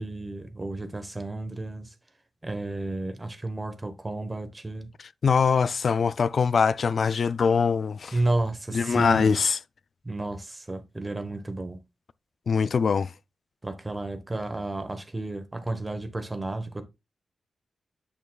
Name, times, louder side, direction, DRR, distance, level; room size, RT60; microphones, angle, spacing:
voice 1, 0.0-1.9 2.4-4.9 8.1-9.4 10.0-11.8 13.6-16.8, right 2 dB, 20° right, 1.0 m, -32 dB
voice 2, 5.2-8.1 8.7-9.6 12.5-13.1, left 5 dB, 55° left, 0.3 m, -23 dB
8.5 x 6.9 x 2.2 m
wide cardioid pair, 125°, 0 cm